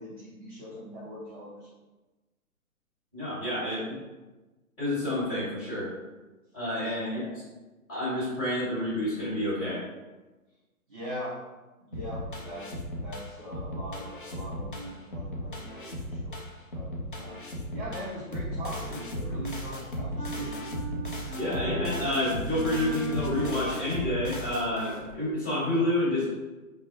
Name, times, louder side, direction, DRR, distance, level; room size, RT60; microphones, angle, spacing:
voice 1, 0.0-1.7 10.9-11.4 11.8-12.7 13.0-16.4 16.7-17.4 17.7-20.5, equal, 35° right, -6 dB, 0.6 m, -41 dB
voice 2, 3.1-4.0 4.8-5.9 6.5-7.4 7.9-9.8 21.3-26.3, left 1 dB, 10° left, -13 dB, 1.4 m, -29 dB
sound 1, 11.9-25.1, equal, 35° left, 0.4 m, -36 dB
sound 2, 20.2-24.1, right 2 dB, 10° right, 1.1 m, -39 dB
4.6 x 2.0 x 2.5 m, 1.2 s
figure-of-eight pair, 135°, 44 cm